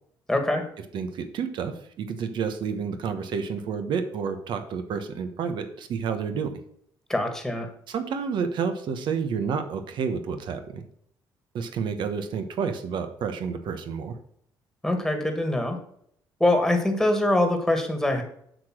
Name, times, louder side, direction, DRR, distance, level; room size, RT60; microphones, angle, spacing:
voice 1, 0.3-0.6 7.1-7.7 14.8-15.8 16.4-18.2, left 1 dB, 5° left, 5 dB, 1.7 m, -23 dB
voice 2, 0.9-6.5 7.9-10.8 11.5-14.2, right 6 dB, 65° right, 8 dB, 1.1 m, -30 dB
7.9 x 5.0 x 6.3 m, 0.67 s
cardioid pair, 110°, 9 cm